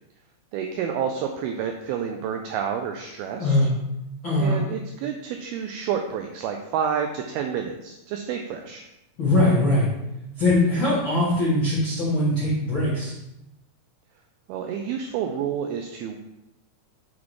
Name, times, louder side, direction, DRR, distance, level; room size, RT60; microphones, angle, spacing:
voice 1, 0.5-3.6 4.3-8.9 14.5-16.2, right 7 dB, 90° right, 4 dB, 2.2 m, -29 dB
voice 2, 3.4-3.7 4.2-4.6 9.2-9.9 10.4-13.1, left 1 dB, 55° left, -10 dB, 1.3 m, -21 dB
7.2 x 4.0 x 4.7 m, 0.90 s
omnidirectional pair, 4.9 m